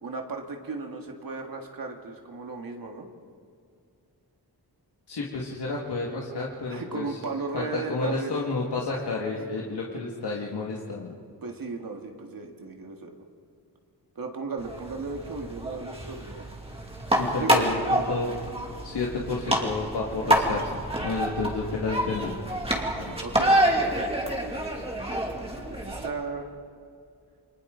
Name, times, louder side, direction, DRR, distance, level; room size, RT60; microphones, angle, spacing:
voice 1, 0.0-3.1 6.7-8.4 11.4-13.1 14.2-16.5 17.4-17.7 23.2-24.6 25.8-26.5, right 4 dB, 60° right, 2 dB, 2.0 m, -35 dB
voice 2, 5.1-7.1 7.5-11.2 17.1-18.3 18.8-20.7 21.0-22.3 22.9-23.1, left 3 dB, 90° left, -3 dB, 2.2 m, -30 dB
sound 1, 14.6-26.1, right 1 dB, 15° right, 2.4 m, -27 dB
29.0 x 24.0 x 4.0 m, 2.3 s
wide cardioid pair, 130°, 39 cm